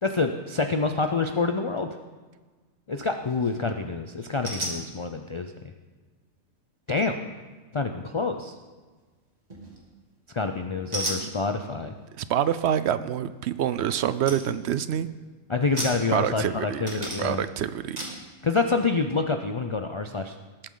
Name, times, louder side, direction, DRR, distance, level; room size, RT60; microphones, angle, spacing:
voice 1, 0.0-1.9 2.9-5.5 6.9-7.2 7.7-8.5 10.3-11.9 15.5-17.4 18.4-20.4, left 4 dB, 50° left, 6 dB, 0.3 m, -27 dB
sound 1, 3.1-3.5 4.4-4.8 9.5-9.9 10.9-11.3 13.7-13.8 14.3-14.4 14.8-15.1 15.8-16.5 16.9-17.4 18.0-18.2, right 1 dB, 30° right, 2.4 m, -33 dB
voice 2, 12.2-15.1 16.1-18.0, right 10 dB, 65° right, 14 dB, 0.7 m, -26 dB
20.0 x 8.8 x 3.9 m, 1.4 s
omnidirectional pair, 1.4 m